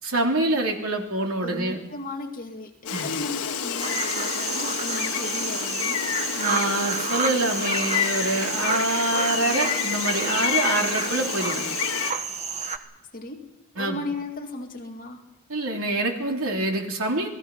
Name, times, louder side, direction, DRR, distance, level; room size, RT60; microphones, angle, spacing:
voice 1, 0.0-1.8 2.9-3.1 6.4-11.6 13.8-14.0 15.5-17.3, right 2 dB, 70° right, 2 dB, 3.4 m, -26 dB
voice 2, 1.4-6.1 13.1-13.5 13.7-15.2, left 2 dB, 40° left, 2 dB, 2.4 m, -36 dB
Gull seagull, 2.9-12.1, left 8 dB, 85° left, 1.4 m, -29 dB
sound 1, 3.8-12.8, right 5 dB, 30° right, 1.3 m, -30 dB
29.0 x 19.5 x 5.5 m, 0.86 s
head